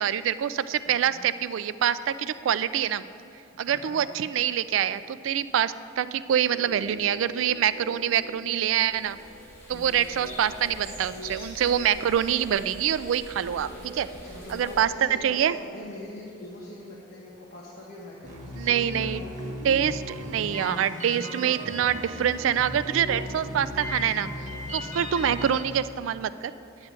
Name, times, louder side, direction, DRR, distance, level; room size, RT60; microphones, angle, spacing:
voice 1, 0.0-3.0 3.6-9.2 9.7-14.1 14.5-15.6 18.5-19.2 19.6-24.3 24.7-26.5, right 9 dB, 90° right, 14 dB, 0.3 m, -25 dB
voice 2, 3.7-4.0 9.7-10.0 14.2-19.1 24.8-25.1, left 1 dB, 60° left, -5 dB, 1.1 m, -43 dB
sound 1, 6.4-18.6 18.8-18.9, left 1 dB, 90° left, 1.7 m, -46 dB
sound 2, 8.0-14.8, equal, 15° left, 1.9 m, -46 dB
sound 3, 18.2-25.6, equal, 40° right, 1.5 m, -36 dB
8.8 x 8.7 x 3.7 m, 2.8 s
head